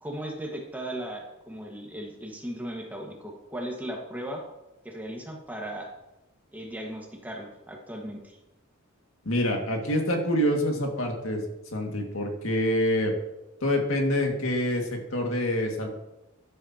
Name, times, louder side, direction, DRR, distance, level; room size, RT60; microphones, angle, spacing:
voice 1, 0.0-4.5 4.8-5.9 6.5-8.4, right 1 dB, 10° right, 0 dB, 1.6 m, -37 dB
voice 2, 9.3-11.4 11.7-13.1 13.6-15.9, equal, 75° left, 1 dB, 2.1 m, -26 dB
13.0 x 11.0 x 2.9 m, 0.96 s
head